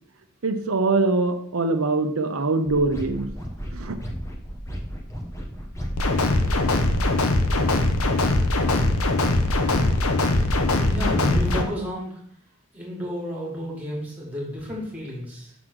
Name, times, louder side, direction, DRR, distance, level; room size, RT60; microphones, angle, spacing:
voice 1, 0.4-3.3 3.7-4.0, right 3 dB, 75° right, 7 dB, 0.7 m, -23 dB
sound 1, 2.7-11.7, equal, 15° left, 1.0 m, -34 dB
sound 2, 6.0-11.6, left 2 dB, 75° left, 0.9 m, -21 dB
voice 2, 10.8-12.2 12.7-15.5, equal, 5° right, -3 dB, 2.1 m, -31 dB
6.1 x 3.8 x 6.2 m, 0.64 s
head